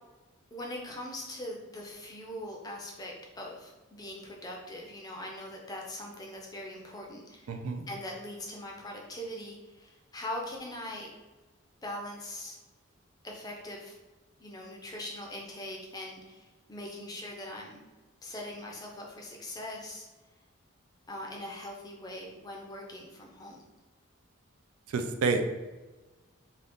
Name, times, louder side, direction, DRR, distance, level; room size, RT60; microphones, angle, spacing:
voice 1, 0.5-7.6 7.9-11.1 11.8-12.6 13.2-14.0 14.4-17.8 18.2-20.1 21.1-23.6, left 1 dB, 20° left, -1 dB, 0.4 m, -41 dB
voice 2, 7.5-7.8 24.9-25.5, right 4 dB, 90° right, 6 dB, 0.4 m, -29 dB
2.6 x 2.4 x 3.5 m, 1.2 s
head